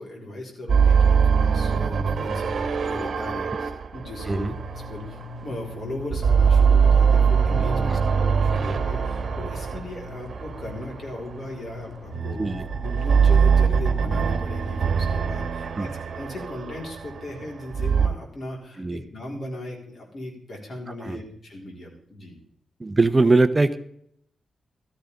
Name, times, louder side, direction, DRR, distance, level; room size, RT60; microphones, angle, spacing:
voice 1, 0.0-4.5 4.9-12.4 12.8-22.4, left 1 dB, 50° left, 0 dB, 4.1 m, -37 dB
sound 1, 0.7-5.6 6.0-11.3 12.1-18.1, right 6 dB, 55° right, 1.4 m, -22 dB
sound 2, 4.3-14.4, left 2 dB, 25° left, 6.4 m, -42 dB
voice 2, 22.8-23.8, right 3 dB, 20° right, 12 dB, 0.7 m, -21 dB
14.0 x 13.5 x 3.6 m, 0.69 s
wide cardioid pair, 135°, 0 cm